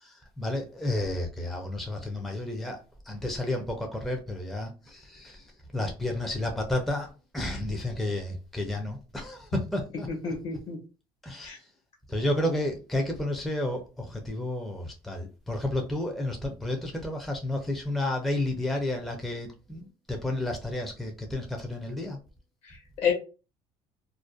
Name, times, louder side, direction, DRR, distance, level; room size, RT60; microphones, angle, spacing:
voice 1, 0.0-2.8 3.1-5.4 5.7-10.3 11.2-11.5 12.1-22.2, left 1 dB, ahead, 0.4 m, -31 dB
voice 2, 10.1-10.8 11.4-11.6 22.6-23.1, left 6 dB, 60° left, 1.2 m, -30 dB
2.4 x 2.1 x 2.5 m
cardioid pair, 110°, 12 cm